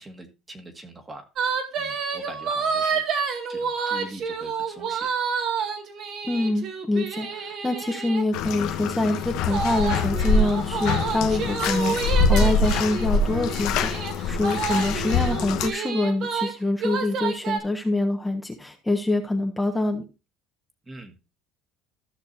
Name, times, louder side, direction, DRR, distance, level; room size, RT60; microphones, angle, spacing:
voice 1, 0.0-3.0 3.5-5.1 20.9-21.2, right 1 dB, 20° right, 1.8 m, -43 dB
sound 1, 1.4-8.2 9.5-16.5 16.8-17.6, right 6 dB, 50° right, 2.1 m, -29 dB
voice 2, 6.3-20.0, left 2 dB, 10° left, 1.3 m, -25 dB
Bathtub (filling or washing), 8.3-15.7, left 3 dB, 70° left, 1.1 m, -24 dB
14.5 x 6.2 x 2.7 m
supercardioid pair, 115°, 0 cm